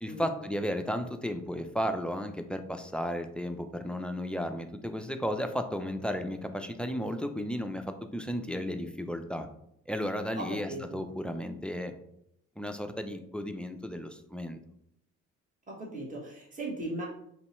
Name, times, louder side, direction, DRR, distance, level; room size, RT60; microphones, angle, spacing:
voice 1, 0.0-7.8 8.1-9.5 9.9-11.9 12.6-14.6, equal, 5° left, 7 dB, 0.3 m, -34 dB
voice 2, 10.3-11.0 15.7-17.0, right 2 dB, 25° right, -3 dB, 1.3 m, -38 dB
3.1 x 2.8 x 4.2 m, 0.74 s
cardioid pair, 90°, 30 cm